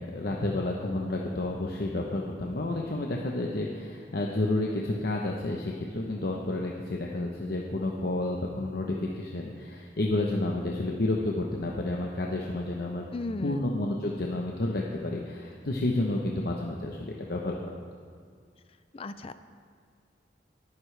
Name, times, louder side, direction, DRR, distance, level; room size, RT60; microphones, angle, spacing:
voice 1, 0.0-13.1 13.4-17.8, left 2 dB, 60° left, -1 dB, 0.9 m, -30 dB
voice 2, 13.1-13.7 18.9-19.3, left 2 dB, 30° left, 12 dB, 0.4 m, -35 dB
21.5 x 9.7 x 3.3 m, 2.1 s
head